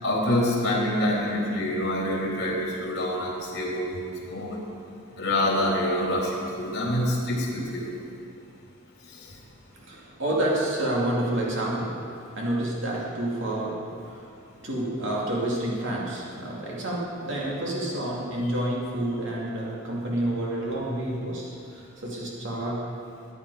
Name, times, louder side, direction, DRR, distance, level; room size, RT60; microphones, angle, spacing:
voice 1, 0.0-4.6 5.2-7.9, left 1 dB, 55° left, -3 dB, 3.3 m, -26 dB
voice 2, 9.7-12.1 12.3-14.2 14.6-22.9, right 1 dB, 65° right, -4 dB, 2.7 m, -29 dB
15.5 x 9.8 x 4.9 m, 2.5 s
head